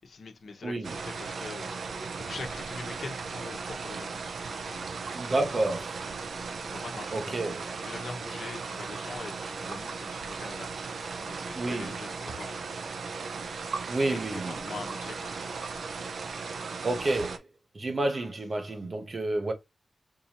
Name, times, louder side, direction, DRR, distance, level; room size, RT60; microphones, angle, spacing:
voice 1, 0.0-1.7 2.2-4.8 6.6-10.7 10.9-12.6 14.1-15.3, left 4 dB, 75° left, 1.0 m, -43 dB
sound 1, 0.8-17.4, right 4 dB, 80° right, 0.6 m, -37 dB
voice 2, 5.1-6.1 6.6-6.7 7.1-7.6 11.5-11.9 13.9-14.7 16.8-17.4 17.7-19.5, right 2 dB, 40° right, 0.7 m, -30 dB
4.6 x 2.7 x 2.8 m
wide cardioid pair, 145°, 0 cm